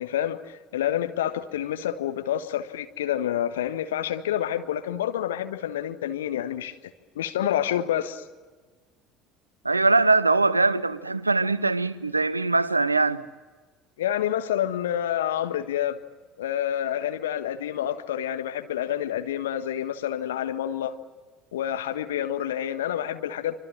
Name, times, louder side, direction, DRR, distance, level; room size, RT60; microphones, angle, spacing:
voice 1, 0.0-6.8 7.1-8.2 14.0-16.0 16.4-20.9 21.5-23.6, left 11 dB, 70° left, 1.5 m, -28 dB
voice 2, 9.6-13.2, right 3 dB, 85° right, 0.8 m, -22 dB
26.5 x 25.0 x 7.5 m
figure-of-eight pair, 60°, 0 cm